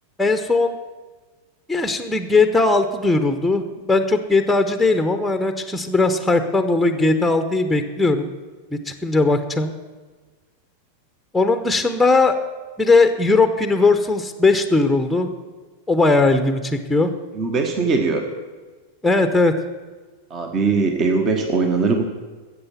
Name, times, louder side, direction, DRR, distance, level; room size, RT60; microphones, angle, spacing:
voice 1, 0.2-0.8 1.7-8.3 8.7-9.7 11.3-12.3 12.8-15.3 15.9-17.1 19.0-19.5, left 3 dB, 5° left, 9 dB, 1.0 m, -18 dB
voice 2, 17.3-18.3 20.3-22.0, right 4 dB, 30° right, 5 dB, 1.4 m, -20 dB
13.5 x 8.2 x 7.2 m, 1.3 s
figure-of-eight pair, 90°, 0 cm